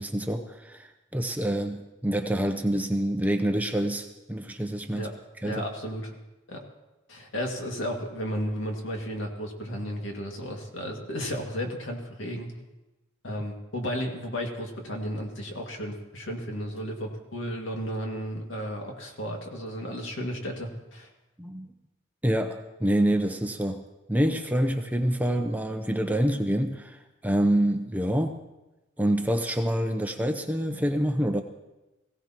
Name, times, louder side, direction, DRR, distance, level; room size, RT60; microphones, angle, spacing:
voice 1, 0.0-5.1 5.4-5.6 21.4-21.7 22.2-23.8 24.1-28.4 29.0-31.4, right 1 dB, 10° right, 5 dB, 0.6 m, -26 dB
voice 2, 5.4-6.1 6.5-6.6 7.1-12.5 13.2-21.1, equal, 70° left, 1 dB, 2.1 m, -33 dB
21.0 x 16.5 x 3.0 m, 1.0 s
head